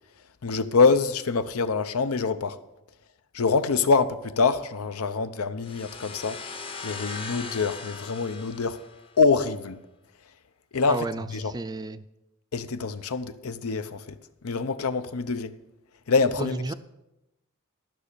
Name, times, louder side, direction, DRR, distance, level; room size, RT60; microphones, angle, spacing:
voice 1, 0.4-2.6 3.3-6.4 6.8-8.8 9.2-9.8 10.7-11.5 12.5-14.0 14.4-15.5 16.1-16.7, left 4 dB, 90° left, 0.6 m, -25 dB
sound 1, 5.6-9.3, left 4 dB, 25° left, 0.7 m, -39 dB
voice 2, 10.9-12.0 16.4-16.7, right 3 dB, 20° right, 0.3 m, -32 dB
12.5 x 6.1 x 6.7 m
head